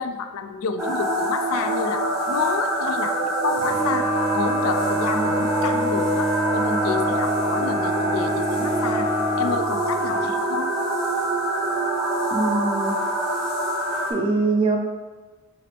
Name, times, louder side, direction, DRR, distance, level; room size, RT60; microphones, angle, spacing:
voice 1, 0.0-4.1 4.3-9.1 9.4-10.7, left 5 dB, 70° left, 9 dB, 0.3 m, -29 dB
sound 1, 0.8-14.1, right 1 dB, ahead, 1.0 m, -25 dB
Bowed string instrument, 3.6-10.3, right 2 dB, 25° left, 0.8 m, -27 dB
voice 2, 12.3-12.9 14.1-14.8, right 3 dB, 20° right, 2 dB, 0.4 m, -23 dB
5.7 x 2.5 x 3.4 m, 1.3 s
head